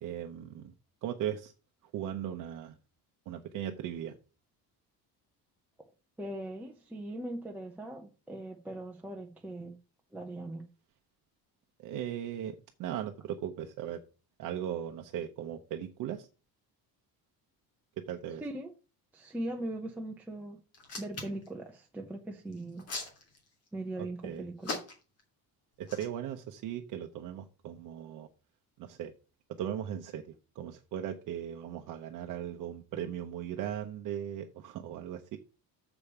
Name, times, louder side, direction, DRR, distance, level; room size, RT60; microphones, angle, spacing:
voice 1, 0.0-0.7 1.0-1.5 1.9-2.7 3.3-4.1 11.8-14.0 14.4-16.3 18.0-18.4 24.0-24.5 25.8-28.3 28.8-29.1 29.6-35.4, right 10 dB, 55° right, 0.9 m, -38 dB
voice 2, 6.2-9.8 10.1-10.6 18.4-18.7 19.1-20.6 21.0-22.9 23.7-24.8, right 1 dB, 5° right, 0.8 m, -40 dB
Hands, 20.7-21.5 22.5-23.7 24.6-25.2 25.8-26.1, left 3 dB, 40° left, 3.0 m, -38 dB
7.0 x 5.1 x 7.0 m
cardioid pair, 180°, 38 cm